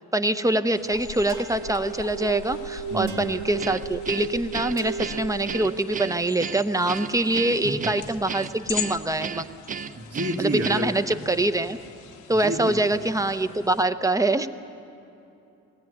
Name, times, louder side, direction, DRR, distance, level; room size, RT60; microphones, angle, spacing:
voice 1, 0.1-9.5 10.4-11.8 12.3-14.5, right 2 dB, 10° right, 10 dB, 0.8 m, -24 dB
sound 1, 0.7-13.8, left 9 dB, 85° left, 1.1 m, -41 dB
sound 2, 1.3-6.1, right 6 dB, 75° right, 2.6 m, -35 dB
voice 2, 2.9-3.3 7.6-7.9 10.0-10.9 12.3-12.8, right 1 dB, 50° right, -2 dB, 2.2 m, -29 dB
Guitar, 3.6-11.1, right 6 dB, 30° right, 0.4 m, -35 dB
20.0 x 15.5 x 9.5 m, 2.9 s
cardioid pair, 90°, 30 cm